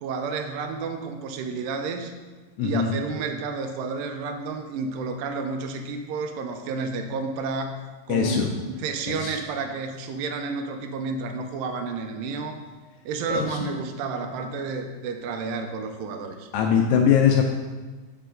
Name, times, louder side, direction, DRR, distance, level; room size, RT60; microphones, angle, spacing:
voice 1, 0.0-2.1 2.6-7.8 8.1-12.6 13.1-16.5, right 4 dB, 80° right, 6 dB, 2.2 m, -31 dB
voice 2, 2.6-2.9 8.1-8.5 9.1-9.4 13.3-13.6 16.5-17.5, left 7 dB, 80° left, 1 dB, 2.2 m, -21 dB
6.8 x 5.7 x 3.7 m, 1.3 s
omnidirectional pair, 4.1 m